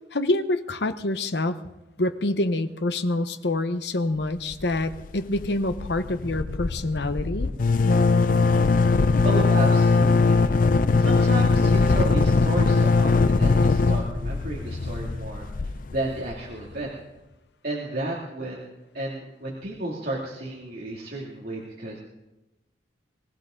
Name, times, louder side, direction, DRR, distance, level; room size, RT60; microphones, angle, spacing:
voice 1, 0.1-1.6 2.0-7.5, left 2 dB, 65° left, 9 dB, 1.0 m, -26 dB
sound 1, 4.5-5.1 5.3-5.5 5.7-16.4, left 4 dB, 45° left, 0.5 m, -20 dB
voice 2, 9.2-10.5 11.0-16.9 17.6-22.0, right 1 dB, 55° right, -4 dB, 2.5 m, -32 dB
23.0 x 15.0 x 3.9 m, 0.98 s
head